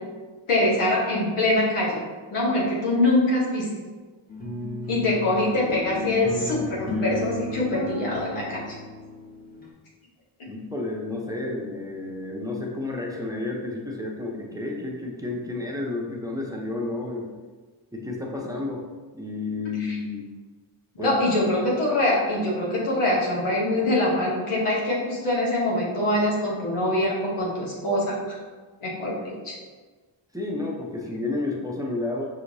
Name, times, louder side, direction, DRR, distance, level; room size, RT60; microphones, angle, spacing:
voice 1, 0.5-2.0 2.3-3.7 4.9-8.8 20.9-28.2 28.8-29.5, left 1 dB, 90° left, -5 dB, 1.3 m, -24 dB
sound 1, 4.3-9.7, left 1 dB, 20° left, 1.2 m, -33 dB
voice 2, 10.5-17.3 17.9-18.8 19.1-20.3 21.0-21.2 30.3-32.2, left 2 dB, 5° right, -2 dB, 0.7 m, -31 dB
5.6 x 2.9 x 2.7 m, 1.4 s
cardioid pair, 55°, 49 cm